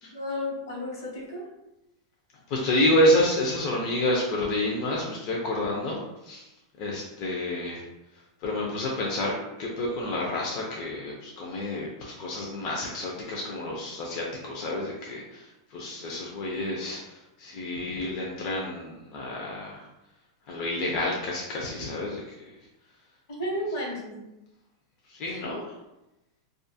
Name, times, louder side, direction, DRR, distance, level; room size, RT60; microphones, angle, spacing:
voice 1, 0.1-1.5 23.4-24.2 25.3-25.5, left 1 dB, 75° left, -2 dB, 1.0 m, -32 dB
voice 2, 2.5-6.5 6.8-7.8 8.4-19.8 20.5-22.2 25.1-25.6, left 1 dB, 35° left, -3 dB, 0.4 m, -29 dB
2.4 x 2.3 x 2.6 m, 0.92 s
supercardioid pair, 170°, 2 cm